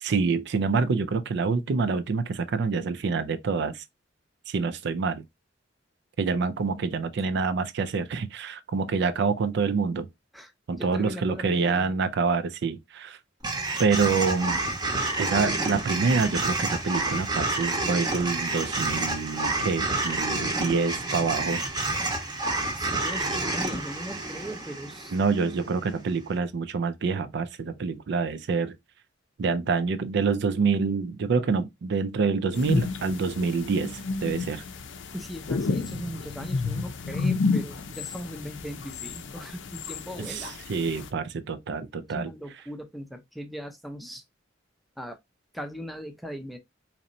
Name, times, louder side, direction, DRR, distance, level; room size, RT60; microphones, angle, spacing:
voice 1, 0.0-3.8 4.5-5.2 6.2-10.1 10.7-13.2 13.8-14.6 15.2-21.6 25.1-28.8 29.4-34.6 40.2-42.3, right 4 dB, 65° right, 0.4 m, -27 dB
voice 2, 10.8-11.9 22.7-25.2 35.1-40.6 42.1-44.2 45.0-45.2 45.5-46.6, equal, ahead, 0.6 m, -39 dB
sound 1, 13.4-25.7, right 2 dB, 20° right, 0.9 m, -29 dB
sound 2, 32.5-41.1, left 4 dB, 70° left, 0.5 m, -31 dB
4.1 x 3.0 x 2.6 m
head